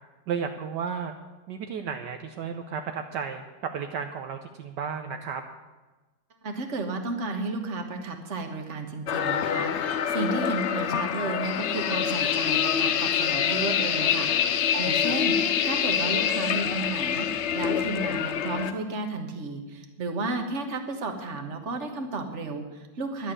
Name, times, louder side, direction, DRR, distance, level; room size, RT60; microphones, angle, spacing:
voice 1, 0.3-1.1 1.5-5.4 14.7-15.1, right 6 dB, 70° right, 5 dB, 1.4 m, -33 dB
voice 2, 6.4-23.3, right 3 dB, 40° right, 5 dB, 1.6 m, -33 dB
sound 1, 9.1-18.7, left 8 dB, 85° left, 0.6 m, -26 dB
11.0 x 8.0 x 9.9 m, 1.2 s
omnidirectional pair, 2.0 m